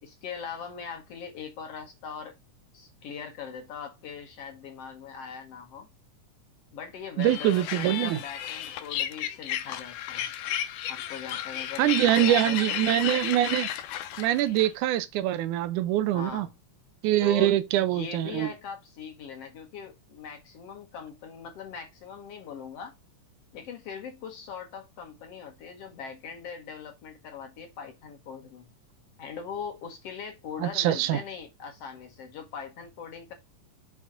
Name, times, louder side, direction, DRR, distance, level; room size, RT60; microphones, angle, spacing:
voice 1, 0.0-2.4 2.7-5.9 6.7-10.3 10.9-12.6 16.1-16.5 17.2-22.9 23.5-28.7 29.2-33.3, left 6 dB, 60° left, 2.0 m, -41 dB
sound 1, 7.2-14.7, left 11 dB, 80° left, 2.3 m, -33 dB
voice 2, 7.2-8.2 11.8-13.7 14.2-16.5 17.0-18.5 30.6-31.2, right 13 dB, 85° right, 2.1 m, -24 dB
6.0 x 4.0 x 5.8 m
omnidirectional pair, 3.6 m